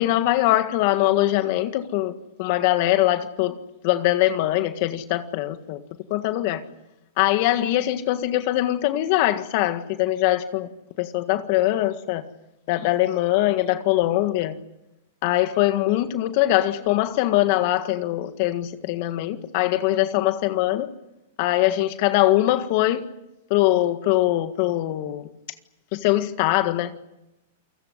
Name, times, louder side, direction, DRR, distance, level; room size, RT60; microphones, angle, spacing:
voice 1, 0.0-2.1 2.4-3.6 3.8-5.8 6.1-6.6 7.2-10.7 11.0-12.2 12.7-14.6 15.2-20.9 21.4-23.1 23.5-25.2 25.9-26.9, left 15 dB, 55° left, 1.7 m, -22 dB
28.5 x 17.5 x 9.9 m
hypercardioid pair, 115°, 0 cm